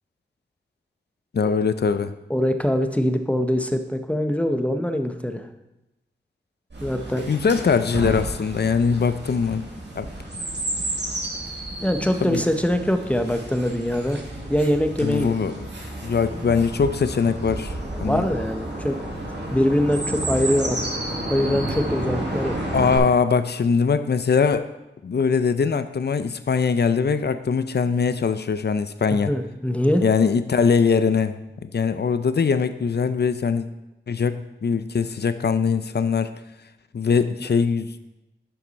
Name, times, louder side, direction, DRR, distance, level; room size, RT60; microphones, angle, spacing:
voice 1, 1.3-2.1 7.3-9.6 10.0-10.1 12.2-12.4 15.0-15.6 16.0-17.7 18.0-18.2 22.7-24.7 25.0-29.3 30.0-33.7 34.1-36.3 36.9-37.9, left 5 dB, 60° left, 11 dB, 0.5 m, -22 dB
voice 2, 2.3-5.5 6.8-7.3 11.8-14.2 14.5-15.3 17.9-19.0 19.5-20.8 21.3-22.5 29.1-30.0, equal, 5° left, 7 dB, 0.9 m, -23 dB
Chirp tweet, 6.7-23.0, right 1 dB, 65° right, 2.2 m, -31 dB
11.0 x 5.9 x 4.1 m, 0.94 s
cardioid pair, 40°, 20 cm